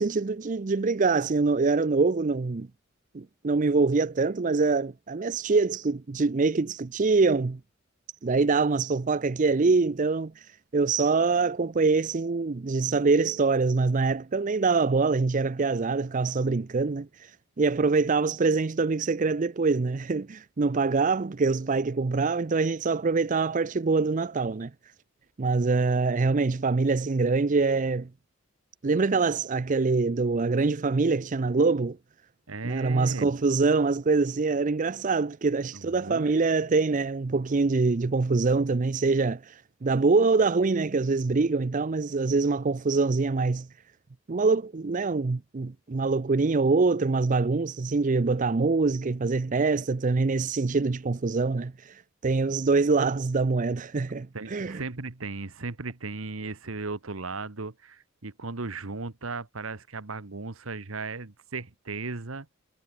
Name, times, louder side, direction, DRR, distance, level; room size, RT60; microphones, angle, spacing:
voice 1, 0.0-2.7 3.1-7.6 8.2-10.5 10.7-17.3 17.6-24.7 25.4-28.1 28.8-32.0 32.6-43.7 44.3-54.8, right 4 dB, 35° right, 0.5 m, -24 dB
voice 2, 32.5-33.3 35.7-36.5 54.3-62.5, right 3 dB, 75° right, 1.4 m, -36 dB
head